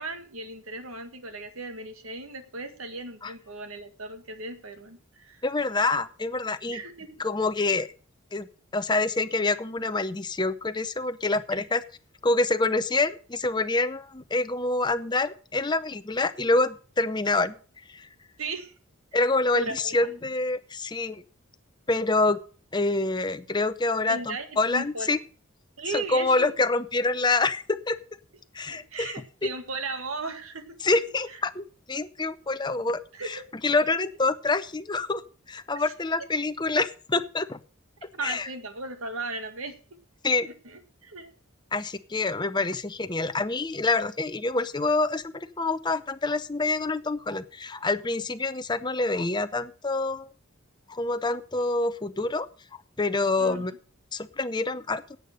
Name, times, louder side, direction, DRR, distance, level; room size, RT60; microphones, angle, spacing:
voice 1, 0.0-5.4 6.7-7.2 11.6-11.7 18.4-18.7 19.5-20.0 24.1-25.2 25.8-26.5 28.7-30.8 31.3-31.4 33.1-33.5 35.7-35.8 38.1-39.8 40.3-41.3 53.4-53.7, right 3 dB, 75° right, 8 dB, 1.8 m, -37 dB
voice 2, 5.4-6.8 7.2-7.9 8.3-8.5 8.7-11.8 12.2-17.6 17.9-18.1 19.1-21.2 21.9-22.4 22.7-25.2 25.9-28.0 28.5-29.2 30.8-33.4 33.6-35.2 35.5-37.6 38.2-38.5 40.2-40.5 41.7-50.3 50.9-52.5 53.0-53.7 54.1-55.0, left 3 dB, 20° left, 11 dB, 0.6 m, -26 dB
10.5 x 8.5 x 6.5 m, 0.40 s
head